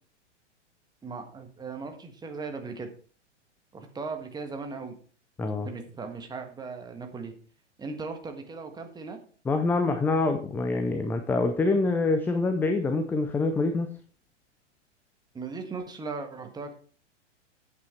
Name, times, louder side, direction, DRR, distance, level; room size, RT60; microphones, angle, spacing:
voice 1, 1.0-2.9 3.7-5.0 5.6-7.3 7.8-9.2 15.3-16.7, right 4 dB, 10° right, 4 dB, 1.6 m, -38 dB
voice 2, 5.4-5.7 9.5-13.9, left 3 dB, 5° left, 7 dB, 0.5 m, -25 dB
9.7 x 8.1 x 4.3 m, 0.43 s
figure-of-eight pair, 105°, 36 cm